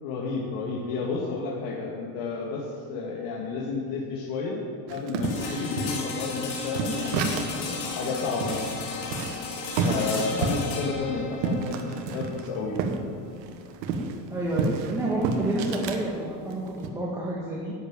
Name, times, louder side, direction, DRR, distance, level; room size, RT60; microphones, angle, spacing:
voice 1, 0.0-4.6 4.9-8.7 9.8-12.8, left 4 dB, 60° left, -3 dB, 2.2 m, -31 dB
sound 1, 4.9-7.7 8.0-8.1 8.4-13.0 13.3-16.0 16.5-16.9, right 4 dB, 90° right, 1.6 m, -30 dB
sound 2, 5.2-15.1, left 4 dB, 85° left, 3.1 m, -35 dB
voice 2, 14.3-17.7, right 1 dB, 5° right, -4 dB, 1.6 m, -29 dB
11.0 x 8.0 x 8.9 m, 2.4 s
supercardioid pair, 145°, 48 cm